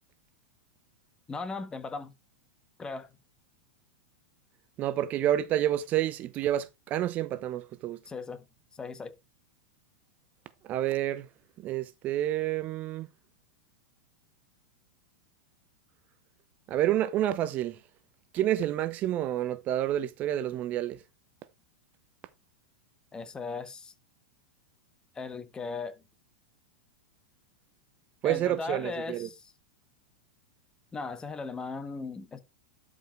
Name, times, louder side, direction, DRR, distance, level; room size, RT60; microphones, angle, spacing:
voice 1, 1.3-2.1 2.8-3.1 8.1-8.4 8.7-9.1 23.1-23.9 25.1-26.0 28.2-29.5 30.9-32.4, left 4 dB, 20° left, 1.3 m, -37 dB
voice 2, 4.8-8.0 10.6-11.3 11.6-13.1 16.7-17.8 18.3-21.0 28.2-29.3, right 12 dB, 40° right, 0.7 m, -29 dB
11.5 x 5.2 x 3.2 m
hypercardioid pair, 105°, 4 cm